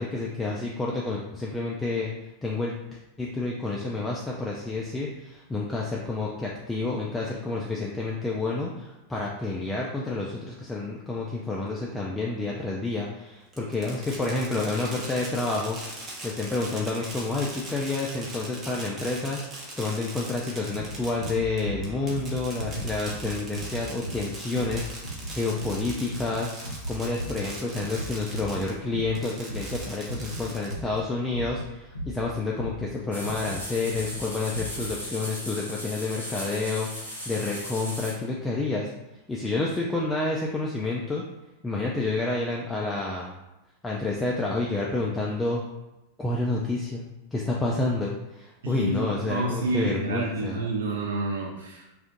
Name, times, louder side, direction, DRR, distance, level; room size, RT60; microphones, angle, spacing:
voice 1, 0.0-2.1 2.4-15.8 16.2-19.4 19.8-26.5 26.9-38.9 39.3-41.2 41.6-43.4 43.8-45.6 46.2-47.0 47.3-50.6, left 3 dB, 10° left, -3 dB, 0.4 m, -29 dB
Fireworks, 13.5-28.7 29.2-31.0, right 2 dB, 25° right, 0.8 m, -40 dB
sound 1, 20.6-33.6 33.8-34.2 34.5-34.9 35.1-35.2, right 1 dB, 90° left, 0.6 m, -37 dB
sound 2, 33.1-38.1, equal, 85° right, 1.2 m, -37 dB
voice 2, 48.6-52.0, right 2 dB, 65° right, -2 dB, 0.8 m, -29 dB
2.4 x 2.4 x 3.8 m, 0.99 s
figure-of-eight pair, 90°, 0 cm